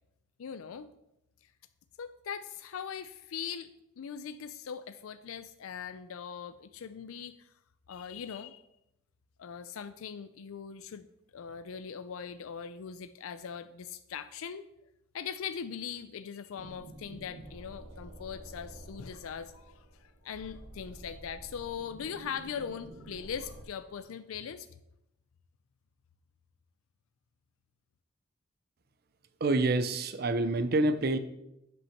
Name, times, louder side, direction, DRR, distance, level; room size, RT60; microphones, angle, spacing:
voice 1, 0.4-0.9 2.0-3.7 4.0-7.5 7.9-8.6 9.4-11.1 11.3-14.6 15.1-24.7, left 7 dB, 85° left, 12 dB, 0.4 m, -40 dB
sound 1, 16.5-23.6, right 1 dB, 75° right, 1.8 m, -50 dB
voice 2, 29.4-31.2, right 2 dB, 45° right, 11 dB, 0.6 m, -27 dB
7.9 x 5.9 x 5.7 m, 0.86 s
head